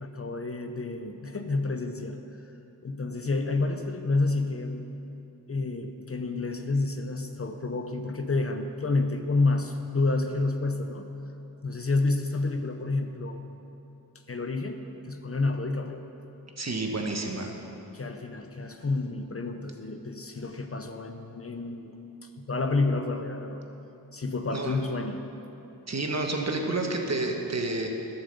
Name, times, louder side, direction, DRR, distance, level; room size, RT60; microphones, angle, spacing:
voice 1, 0.0-2.2 2.8-4.9 5.5-11.1 11.6-13.5 14.3-16.1 17.9-21.9 22.2-23.6 24.1-25.2, left 3 dB, 35° left, 6 dB, 0.7 m, -29 dB
voice 2, 16.6-17.5 24.5-24.8 25.9-27.9, right 2 dB, 45° right, 2 dB, 1.3 m, -29 dB
11.5 x 7.1 x 7.0 m, 2.9 s
wide cardioid pair, 60°, 38 cm